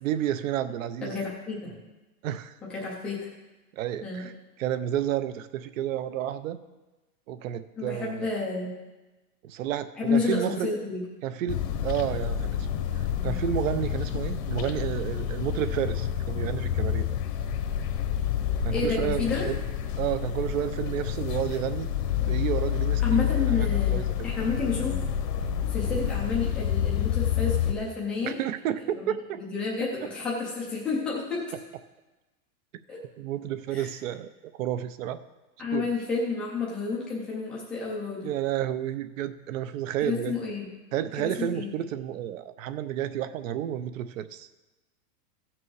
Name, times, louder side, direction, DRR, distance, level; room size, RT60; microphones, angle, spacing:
voice 1, 0.0-1.2 2.2-2.6 3.7-4.3 4.6-6.6 7.3-8.3 9.4-10.7 11.2-12.7 12.9-17.2 18.6-19.6 20.0-21.9 22.3-24.3 28.2-29.4 33.2-35.2 35.7-35.9 38.2-40.4 40.9-44.5, right 11 dB, 55° right, 13 dB, 0.7 m, -31 dB
voice 2, 1.0-1.7 2.7-3.3 4.0-4.2 7.8-8.7 9.9-11.0 18.7-19.5 23.0-24.0 24.2-25.0 25.7-28.3 28.9-31.4 32.9-33.0 33.7-33.9 35.6-38.3 40.0-40.7 41.2-41.7, left 4 dB, ahead, -6 dB, 0.4 m, -30 dB
sound 1, 11.5-27.7, left 9 dB, 80° left, 1.3 m, -28 dB
16.0 x 6.1 x 4.7 m, 1.1 s
supercardioid pair, 165°, 48 cm